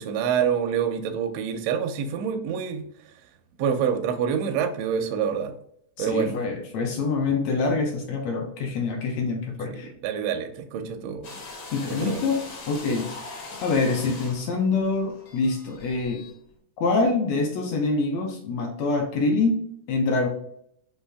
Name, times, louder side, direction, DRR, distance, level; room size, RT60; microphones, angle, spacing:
voice 1, 0.0-2.9 3.6-5.5 6.0-6.4 9.6-11.4 11.9-12.2, right 7 dB, 80° right, 6 dB, 1.4 m, -27 dB
voice 2, 6.0-9.9 11.7-16.2 16.8-19.6 19.9-20.3, left 3 dB, 75° left, 2 dB, 1.6 m, -25 dB
sound 1, 11.2-16.4, left 3 dB, 55° left, 1.3 m, -41 dB
5.5 x 2.8 x 3.4 m, 0.69 s
omnidirectional pair, 3.7 m